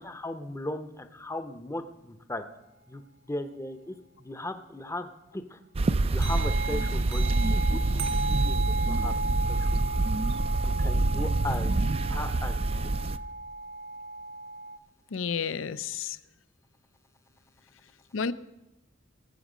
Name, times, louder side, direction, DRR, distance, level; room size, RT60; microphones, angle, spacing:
voice 1, 0.0-2.4 2.9-5.6 6.1-9.1 9.5-9.8 10.8-11.7 12.1-13.0, left 1 dB, 15° left, 9 dB, 0.7 m, -37 dB
sound 1, 5.7-13.2, right 2 dB, 30° right, 0.4 m, -26 dB
sound 2, 6.2-14.8, right 2 dB, 70° right, 1.4 m, -35 dB
voice 2, 15.1-16.2 18.1-18.3, left 6 dB, 80° left, 16 dB, 0.5 m, -31 dB
19.5 x 7.2 x 5.0 m, 0.99 s
head